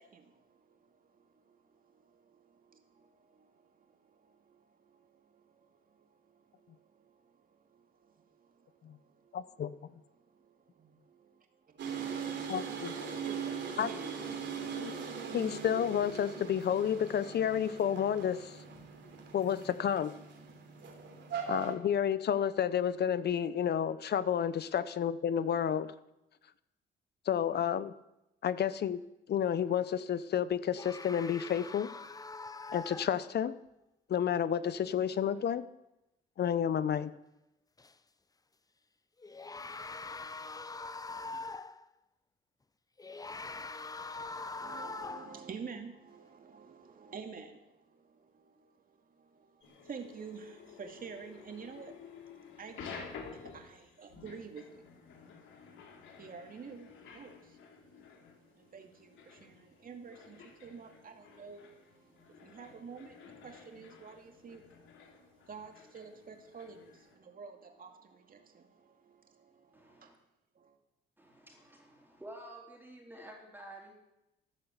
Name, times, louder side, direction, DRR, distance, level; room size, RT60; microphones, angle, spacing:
voice 1, 0.0-9.7 9.9-12.6 13.1-15.4 44.6-55.0 55.6-55.9 56.2-57.8 58.1-70.1 70.6-70.8, right 5 dB, 45° right, 5 dB, 2.3 m, -51 dB
voice 2, 9.3-9.7 12.5-12.9 13.8-13.9 14.8-14.9 15.3-18.6 19.3-20.1 21.5-25.9 27.3-27.9 28.4-29.0 29.3-31.9 32.7-33.5 34.1-35.6 36.4-37.1, left 9 dB, 55° left, 15 dB, 0.8 m, -30 dB
sound 1, 11.8-21.7, right 6 dB, 65° right, 3.3 m, -40 dB
sound 2, 30.8-33.5 37.8-37.9 39.2-41.9 43.0-45.4, left 3 dB, 20° left, 0.7 m, -43 dB
sound 3, 49.6-67.1, left 5 dB, 80° left, 3.0 m, -52 dB
voice 3, 69.7-70.2 71.2-73.9, right 1 dB, 10° right, -1 dB, 3.7 m, -50 dB
13.0 x 11.5 x 8.2 m, 0.90 s
cardioid pair, 90°, 20 cm